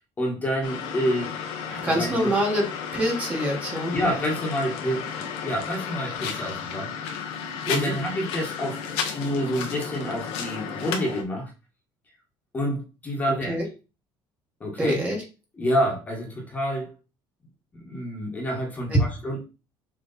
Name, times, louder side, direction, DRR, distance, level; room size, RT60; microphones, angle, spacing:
voice 1, 0.2-1.4 1.7-2.3 3.9-6.9 7.7-11.5 12.5-13.6 14.6-15.0 15.6-16.9 17.7-19.4, equal, 15° left, 0 dB, 1.5 m, -28 dB
sound 1, 0.6-11.2, left 7 dB, 85° left, 1.6 m, -33 dB
voice 2, 1.8-2.7 2.9-3.9 7.7-7.9 13.5-13.6 14.8-15.2 18.9-19.0, equal, 15° right, -1 dB, 1.7 m, -25 dB
6.8 x 3.4 x 4.1 m, 0.30 s
cardioid pair, 180°, 9 cm